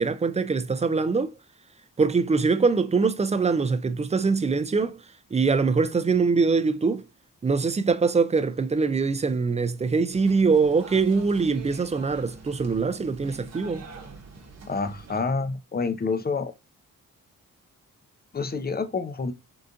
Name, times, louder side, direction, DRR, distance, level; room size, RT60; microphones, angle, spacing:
voice 1, 0.0-1.3 2.0-5.0 5.3-7.0 7.4-13.9, right 4 dB, 20° right, 0.4 m, -23 dB
sound 1, 10.1-15.2, right 4 dB, 50° right, 0.9 m, -45 dB
voice 2, 14.7-16.5 18.3-19.3, left 4 dB, 30° left, 0.6 m, -28 dB
3.7 x 2.4 x 2.5 m
cardioid pair, 65°, 33 cm